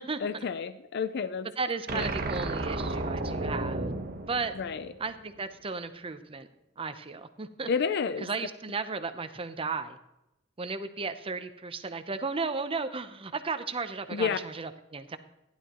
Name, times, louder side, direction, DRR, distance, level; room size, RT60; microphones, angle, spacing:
voice 1, 0.2-1.5 1.9-2.1 4.6-4.9 7.7-8.3 14.1-14.4, left 6 dB, 55° left, 13 dB, 0.4 m, -30 dB
voice 2, 1.6-3.9 4.3-4.5 5.0-6.5 6.8-7.7 8.2-10.0 10.6-15.2, right 4 dB, 30° right, 10 dB, 0.7 m, -34 dB
sound 1, 1.9-5.2, right 2 dB, 50° right, 1.1 m, -33 dB
14.5 x 11.0 x 3.0 m, 0.92 s
head